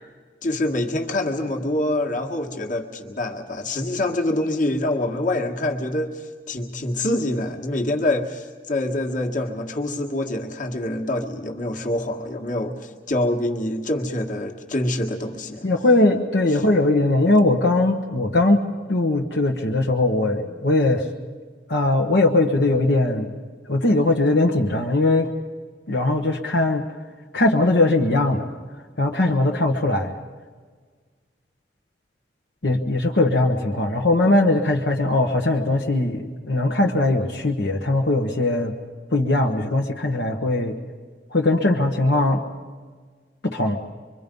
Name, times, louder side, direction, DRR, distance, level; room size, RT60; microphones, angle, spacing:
voice 1, 0.4-15.7 16.5-16.6, left 1 dB, 45° left, 2 dB, 1.8 m, -25 dB
voice 2, 15.6-18.6 18.9-21.0 21.7-23.4 23.7-25.3 25.9-26.8 27.3-28.4 29.0-30.1 32.6-38.7 39.1-40.7 41.3-42.4 43.4-43.8, left 2 dB, 70° left, 0 dB, 1.3 m, -20 dB
25.5 x 24.0 x 5.4 m, 1.6 s
head